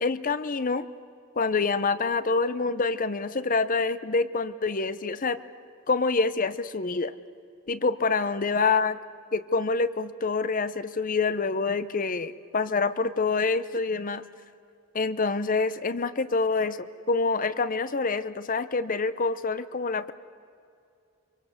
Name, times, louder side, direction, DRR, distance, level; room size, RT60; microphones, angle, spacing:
voice 1, 0.0-0.9 1.4-5.4 5.9-7.1 7.7-9.0 9.3-14.2 14.9-20.1, left 4 dB, 40° left, 14 dB, 0.8 m, -26 dB
25.0 x 23.5 x 8.1 m, 2.4 s
head